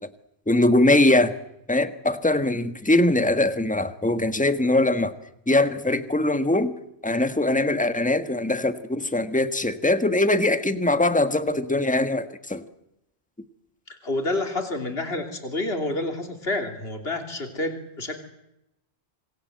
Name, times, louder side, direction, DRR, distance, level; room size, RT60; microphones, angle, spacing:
voice 1, 0.5-1.3 1.7-5.1 5.5-6.7 7.0-12.6, left 2 dB, 10° left, 10 dB, 1.5 m, -22 dB
voice 2, 13.9-18.2, left 2 dB, 75° left, 5 dB, 3.4 m, -29 dB
27.5 x 21.5 x 8.0 m, 0.84 s
omnidirectional pair, 1.0 m